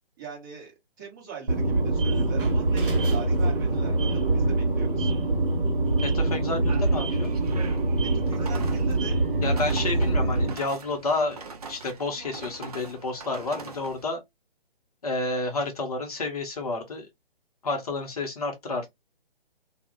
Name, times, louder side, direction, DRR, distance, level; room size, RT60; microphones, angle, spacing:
voice 1, 0.2-0.7 1.0-5.1 8.0-9.2, right 6 dB, 20° right, 0.8 m, -42 dB
sound 1, 1.5-10.5, right 2 dB, 60° right, 0.9 m, -24 dB
voice 2, 6.0-7.3 9.4-14.2 15.0-17.1 17.6-18.9, left 2 dB, 40° left, 0.7 m, -30 dB
sound 2, 6.7-14.0, right 4 dB, 40° right, 0.5 m, -42 dB
2.3 x 2.0 x 2.8 m
figure-of-eight pair, 140°, 30 cm